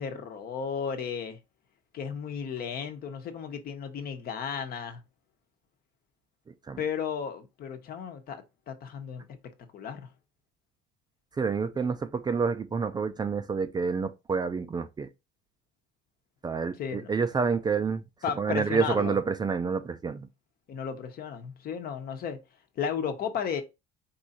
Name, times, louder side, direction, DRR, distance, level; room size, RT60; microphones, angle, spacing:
voice 1, 0.0-1.4 1.9-5.0 6.8-9.2 9.7-10.1 16.8-17.1 18.2-19.1 20.7-22.4 22.8-23.6, left 7 dB, 50° left, 1.1 m, -34 dB
voice 2, 6.5-6.8 11.4-15.1 16.4-18.0 18.4-20.3, right 5 dB, 20° right, 0.5 m, -28 dB
4.7 x 2.6 x 4.2 m
supercardioid pair, 110°, 20 cm